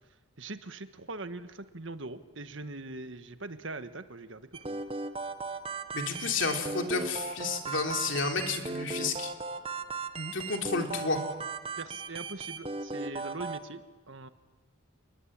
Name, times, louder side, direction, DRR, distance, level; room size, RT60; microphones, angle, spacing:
voice 1, 0.4-4.8 10.2-10.3 11.8-14.3, right 2 dB, 65° right, 10 dB, 1.5 m, -42 dB
sound 1, 4.5-13.6, right 3 dB, 25° right, 1.2 m, -37 dB
voice 2, 5.9-9.3 10.3-11.2, left 4 dB, 65° left, 3 dB, 3.3 m, -31 dB
29.0 x 21.5 x 8.9 m, 1.2 s
head